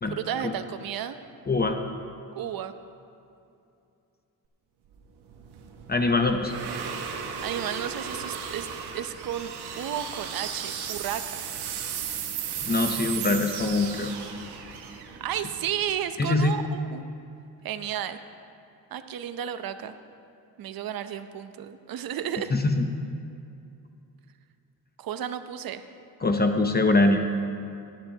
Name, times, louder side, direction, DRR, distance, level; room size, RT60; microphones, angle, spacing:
voice 1, 0.1-1.2 2.3-2.7 7.4-11.5 15.2-17.0 17.6-18.2 18.9-19.9 20.6-22.5 25.0-25.8, right 9 dB, 65° right, 10 dB, 0.8 m, -33 dB
voice 2, 1.5-1.8 5.9-6.5 12.6-14.1 16.2-16.6 22.5-22.9 26.2-27.2, left 2 dB, 25° left, 5 dB, 0.7 m, -23 dB
sound 1, 4.9-16.2, right 7 dB, 85° right, 1.1 m, -35 dB
18.5 x 10.5 x 2.9 m, 2.6 s
cardioid pair, 90°, 38 cm